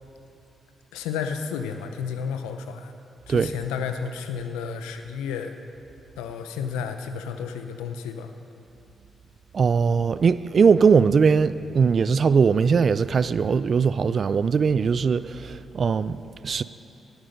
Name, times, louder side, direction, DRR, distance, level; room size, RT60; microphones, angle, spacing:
voice 1, 0.9-2.9 3.3-5.5 6.2-8.3, left 6 dB, 90° left, 0.7 m, -32 dB
voice 2, 9.5-16.6, right 5 dB, 55° right, 0.4 m, -20 dB
18.0 x 8.1 x 5.3 m
supercardioid pair, 45°, 0 cm